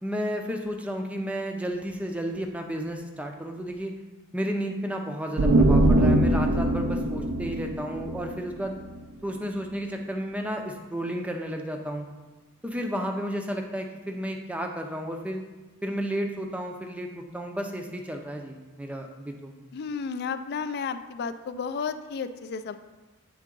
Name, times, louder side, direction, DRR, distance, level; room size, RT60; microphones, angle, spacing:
voice 1, 0.0-3.9 4.3-8.8 9.2-12.1 12.6-15.4 15.8-19.5, equal, 5° right, 3 dB, 0.5 m, -32 dB
sound 1, 5.4-9.0, right 1 dB, 85° right, 0.5 m, -22 dB
voice 2, 19.7-22.8, left 5 dB, 50° left, 11 dB, 0.3 m, -32 dB
8.5 x 3.6 x 3.8 m, 1.2 s
head